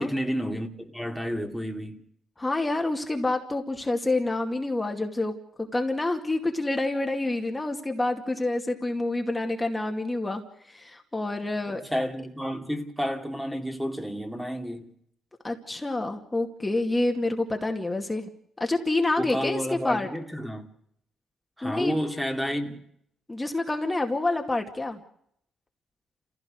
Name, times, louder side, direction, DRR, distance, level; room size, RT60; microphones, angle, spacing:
voice 1, 0.0-2.0 11.7-14.9 19.2-20.7 21.6-22.8, equal, ahead, 2.5 m, -30 dB
voice 2, 2.4-5.3 5.7-10.4 10.7-11.8 15.4-18.3 18.6-20.1 21.6-21.9 23.3-25.0, left 2 dB, 15° left, 2.3 m, -27 dB
29.0 x 16.0 x 6.5 m
cardioid pair, 90°, 0 cm